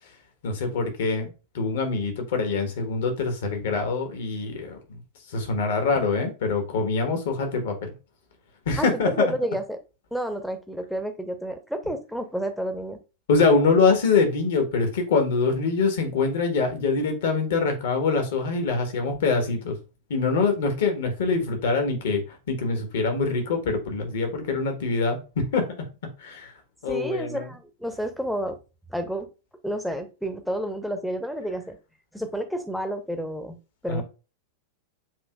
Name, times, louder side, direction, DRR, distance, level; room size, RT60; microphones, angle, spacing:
voice 1, 0.4-5.0 5.3-7.9 8.6-9.3 13.3-19.8 20.1-25.7 26.2-26.5 26.8-27.5 33.9-34.0, left 4 dB, 60° left, 1.2 m, -24 dB
voice 2, 8.8-9.8 10.1-13.0 26.9-28.6 28.9-29.3 29.6-31.8 32.1-34.0, equal, ahead, 0.8 m, -30 dB
7.4 x 2.9 x 2.3 m
figure-of-eight pair, 90°, 0 cm